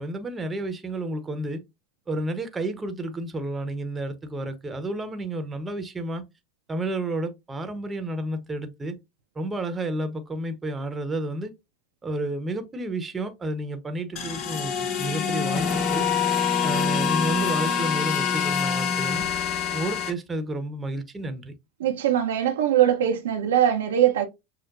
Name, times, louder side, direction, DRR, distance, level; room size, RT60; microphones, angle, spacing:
voice 1, 0.0-1.6 2.1-6.2 6.7-8.9 9.3-11.5 12.0-16.1 16.6-19.2 19.7-21.5, right 1 dB, 20° right, 0.9 m, -31 dB
sound 1, 14.2-20.1, left 7 dB, 55° left, 0.9 m, -25 dB
voice 2, 21.8-24.3, right 11 dB, 85° right, 0.8 m, -21 dB
6.3 x 2.1 x 2.5 m
hypercardioid pair, 90°, 0 cm